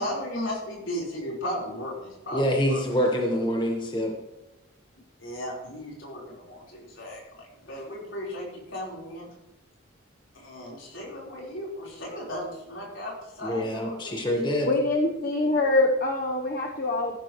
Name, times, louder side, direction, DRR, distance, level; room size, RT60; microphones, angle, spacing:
voice 1, 0.0-3.0 5.2-9.3 10.3-14.3, left 1 dB, 75° left, -3 dB, 4.4 m, -36 dB
voice 2, 2.3-4.1 13.4-14.7, equal, 25° left, 1 dB, 1.4 m, -26 dB
voice 3, 14.6-17.2, left 2 dB, 45° left, 1 dB, 1.0 m, -24 dB
14.5 x 12.0 x 3.2 m, 0.96 s
head